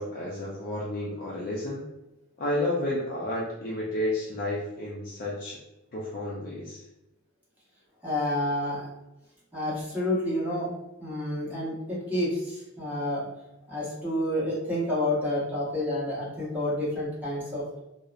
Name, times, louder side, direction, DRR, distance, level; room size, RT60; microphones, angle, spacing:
voice 1, 0.0-1.9 2.4-5.6 5.9-6.8, left 1 dB, 45° left, -5 dB, 0.4 m, -31 dB
voice 2, 8.0-8.9 9.5-10.7 11.0-13.3 13.7-17.6, left 1 dB, 10° right, -7 dB, 0.8 m, -29 dB
2.7 x 2.0 x 2.4 m, 0.91 s
head